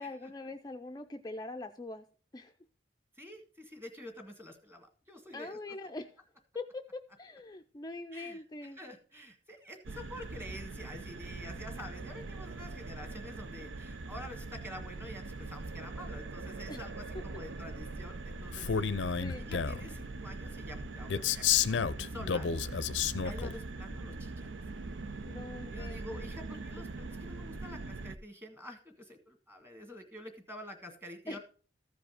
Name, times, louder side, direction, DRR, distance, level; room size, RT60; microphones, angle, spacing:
voice 1, 0.0-2.1 2.3-2.5 5.3-6.1 6.5-8.8 16.7-16.8 17.1-17.2 19.2-19.5 25.3-26.3 31.3-31.4, left 2 dB, 20° left, 6 dB, 0.4 m, -43 dB
voice 2, 3.2-5.8 8.1-22.8 23.1-24.5 25.7-31.4, left 1 dB, 10° right, 5 dB, 1.7 m, -48 dB
sound 1, 9.8-28.2, right 3 dB, 85° right, 0.6 m, -42 dB
Male speech man speaking, 18.5-19.9 21.1-23.5, left 7 dB, 80° left, 0.5 m, -30 dB
14.0 x 5.0 x 4.9 m, 0.39 s
head